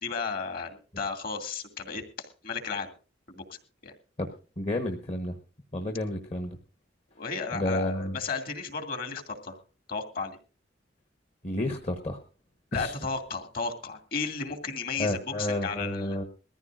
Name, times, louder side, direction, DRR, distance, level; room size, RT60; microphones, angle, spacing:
voice 1, 0.0-2.9 3.3-3.9 7.1-9.6 9.9-10.4 12.7-16.2, left 4 dB, 50° left, 5 dB, 2.3 m, -34 dB
voice 2, 4.6-5.4 5.7-6.6 7.5-8.1 11.4-12.2 12.7-12.9 14.9-16.2, left 1 dB, 35° left, 4 dB, 1.1 m, -30 dB
21.5 x 14.5 x 2.5 m, 0.36 s
head